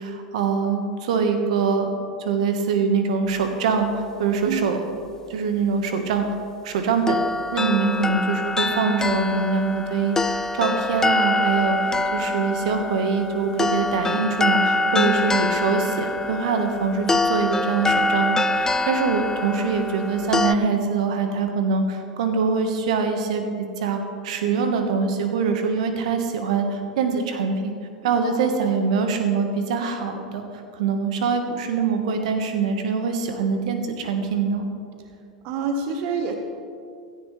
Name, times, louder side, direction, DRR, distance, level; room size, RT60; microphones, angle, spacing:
voice 1, 0.0-1.9 2.2-4.8 5.3-6.2 6.6-7.2 7.5-27.7 28.0-30.4 30.7-34.7, right 5 dB, 70° right, 5 dB, 1.5 m, -24 dB
sound 1, 7.1-20.5, left 2 dB, 15° left, 0.5 m, -24 dB
voice 2, 35.4-36.3, right 5 dB, 50° right, 4 dB, 1.3 m, -27 dB
16.0 x 13.5 x 3.4 m, 2.3 s
hypercardioid pair, 95°, 4 cm